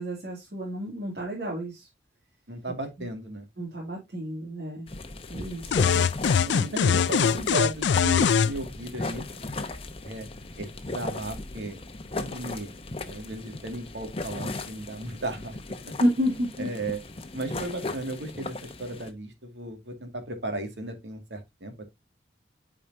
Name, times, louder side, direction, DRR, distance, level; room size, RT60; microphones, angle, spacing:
voice 1, 0.0-1.9 3.0-3.1 3.6-4.9 5.3-5.9 6.4-6.8 16.0-16.7, equal, 60° right, 2.4 m, -30 dB
voice 2, 2.5-3.4 6.5-9.2 10.0-10.3 10.6-11.8 12.1-12.7 13.1-15.6 16.6-17.0 17.3-21.8, right 2 dB, 85° right, 2.0 m, -35 dB
sound 1, 4.9-19.1, left 2 dB, 30° left, 0.8 m, -37 dB
sound 2, 5.7-8.5, left 7 dB, 85° left, 0.4 m, -22 dB
9.0 x 4.9 x 2.7 m
head